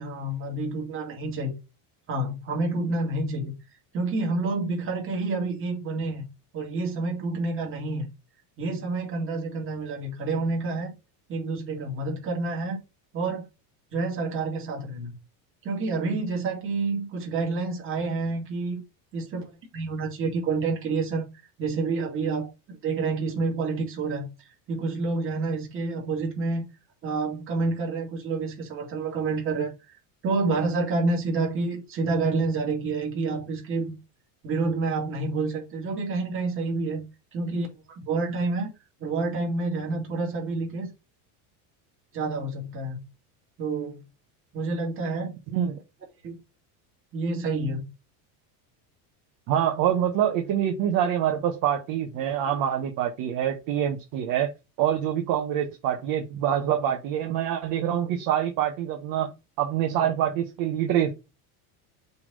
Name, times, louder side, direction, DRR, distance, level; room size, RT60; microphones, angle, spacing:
voice 1, 0.0-1.5 2.1-3.5 3.9-6.2 6.5-8.1 8.6-10.9 11.3-12.8 13.1-13.5 13.9-15.1 15.6-18.8 19.1-24.3 24.7-26.6 27.0-29.7 30.2-33.9 34.4-37.0 37.3-38.7 39.0-40.9 42.1-43.0 43.6-44.0 44.5-45.3 46.2-46.4 47.1-47.9, right 3 dB, 25° right, 2.5 m, -28 dB
voice 2, 49.5-54.5 54.8-61.1, right 10 dB, 45° right, 1.1 m, -25 dB
6.8 x 3.5 x 3.9 m
cardioid pair, 170°, 46 cm